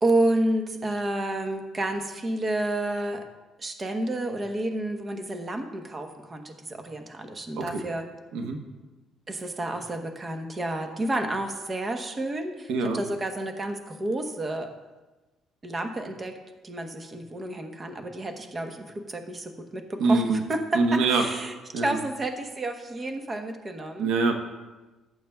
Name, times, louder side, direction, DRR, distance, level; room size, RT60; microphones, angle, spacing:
voice 1, 0.0-3.2 3.6-8.0 9.3-14.7 15.6-16.4 16.6-24.1, right 1 dB, 25° right, 5 dB, 1.0 m, -30 dB
voice 2, 12.7-13.0 20.0-20.4 20.7-21.2 21.7-22.0 24.0-24.3, right 3 dB, 85° right, 4 dB, 1.0 m, -24 dB
15.0 x 8.1 x 2.3 m, 1.2 s
cardioid pair, 110°, 0 cm